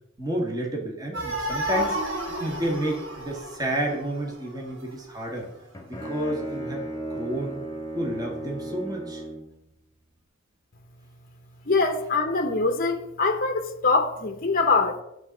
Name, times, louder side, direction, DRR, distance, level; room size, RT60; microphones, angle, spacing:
voice 1, 0.2-5.4 5.9-6.8 7.1-7.6 7.9-9.2, right 1 dB, 20° right, 1.5 m, -30 dB
sound 1, 1.1-4.6, equal, 65° right, 1.8 m, -31 dB
Bowed string instrument, 5.4-9.6, right 1 dB, 15° left, 1.4 m, -35 dB
voice 2, 11.7-15.0, left 3 dB, 45° left, 0.8 m, -23 dB
10.5 x 4.1 x 6.2 m
head